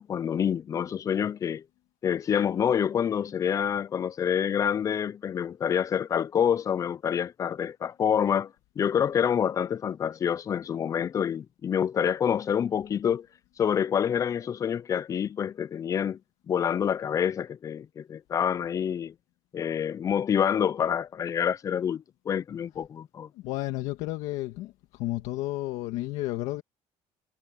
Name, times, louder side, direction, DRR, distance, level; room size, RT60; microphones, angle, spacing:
voice 1, 0.0-1.6 2.0-13.3 13.6-16.2 16.5-19.1 19.5-23.3, left 8 dB, 30° left, 0.3 m, -27 dB
voice 2, 23.4-24.7 25.0-26.6, left 17 dB, 80° left, 1.6 m, -31 dB
cardioid pair, 130°, 12 cm